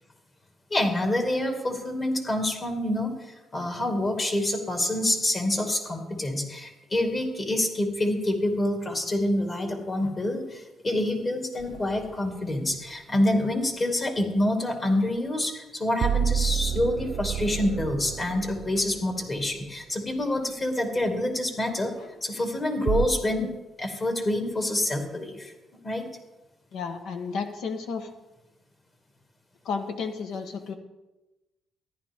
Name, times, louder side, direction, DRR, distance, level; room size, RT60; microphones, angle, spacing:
voice 1, 0.7-3.1 3.5-21.9 22.2-23.5 23.8-25.5 25.8-26.1, left 1 dB, 35° left, 4 dB, 2.4 m, -27 dB
sound 1, 11.6-12.1 16.0-19.4 22.9-23.1, right 8 dB, 70° right, 0.6 m, -29 dB
voice 2, 26.7-28.1 29.6-30.7, left 5 dB, 80° left, 6 dB, 1.3 m, -32 dB
14.0 x 10.5 x 3.7 m, 1.0 s
cardioid pair, 90°, 0 cm